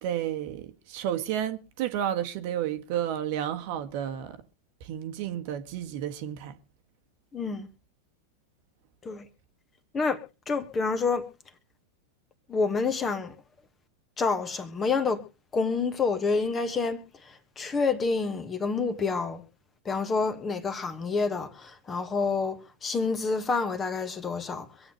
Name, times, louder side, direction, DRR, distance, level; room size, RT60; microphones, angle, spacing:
voice 1, 0.0-4.4 4.8-6.6, right 10 dB, 45° right, 1.4 m, -31 dB
voice 2, 7.3-7.7 9.0-9.3 9.9-10.2 10.5-11.3 12.5-13.3 14.2-15.2 15.5-19.4 19.8-24.7, left 4 dB, 20° left, 1.6 m, -28 dB
25.5 x 8.7 x 3.1 m
figure-of-eight pair, 90°, 0 cm